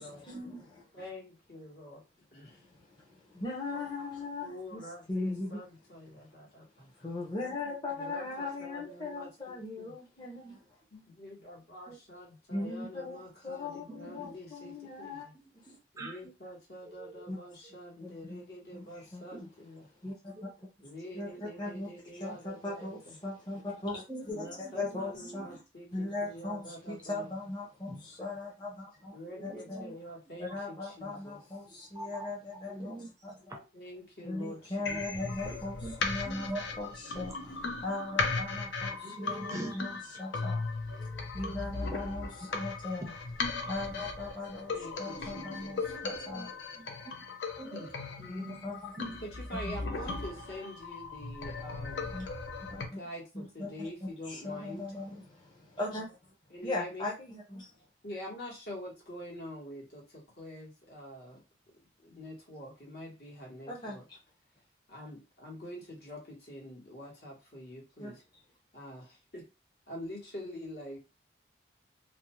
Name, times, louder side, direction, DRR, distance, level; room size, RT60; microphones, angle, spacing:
voice 1, 0.0-0.9 2.5-4.8 5.1-5.6 7.0-10.6 12.5-15.3 17.3-17.4 18.0-18.4 18.7-19.2 20.0-20.5 21.1-21.9 22.2-25.6 25.9-29.2 29.4-29.9 30.4-33.3 34.2-37.3 37.8-39.9 40.2-43.1 43.5-46.5 48.3-49.0 49.6-49.8 52.1-52.3 52.6-53.0 53.3-53.9 54.3-56.2 56.6-57.7 63.7-64.2 68.0-68.2, left 2 dB, 25° left, -3 dB, 0.7 m, -39 dB
voice 2, 0.9-2.0 2.3-2.6 4.4-7.1 7.9-9.9 10.9-15.3 15.9-19.9 20.8-23.2 24.3-27.4 29.1-31.4 33.7-35.3 44.7-46.0 47.7-47.9 49.2-52.1 52.8-54.9 56.5-57.1 58.0-61.4 62.0-64.1 64.9-68.2 68.7-69.5 69.9-71.0, equal, 60° left, -2 dB, 1.2 m, -46 dB
voice 3, 13.9-14.3 15.3-16.3 16.8-17.3 17.6-17.8 19.3-19.5 20.3-20.5 21.1-21.5 24.1-25.6 27.9-28.0 29.2-30.0 30.5-30.6 31.7-32.3 32.7-33.7 35.5-36.6 39.0-39.8 40.9-41.6 41.9-42.3 46.3-47.2 47.6-47.9 48.2-48.6 49.0-49.2 49.9-50.1, right 2 dB, 15° right, 0 dB, 0.4 m, -46 dB
sound 1, 34.8-52.8, left 3 dB, 85° left, 0.6 m, -37 dB
2.5 x 2.1 x 3.0 m, 0.28 s
head